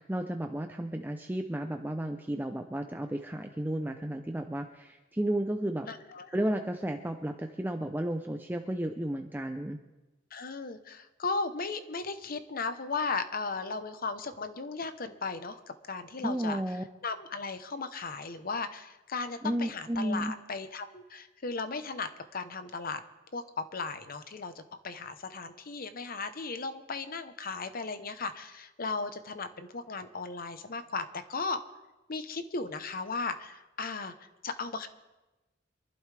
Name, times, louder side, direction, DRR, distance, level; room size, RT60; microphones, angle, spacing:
voice 1, 0.0-5.9 6.3-9.8 16.2-16.8 19.4-20.3, right 1 dB, 10° right, 5 dB, 0.6 m, -33 dB
voice 2, 5.9-6.3 10.3-15.6 15.9-16.6 17.0-23.0 23.3-31.6 32.1-34.1 34.4-34.9, left 4 dB, 50° left, 10 dB, 0.9 m, -36 dB
25.5 x 11.5 x 3.4 m, 1.1 s
head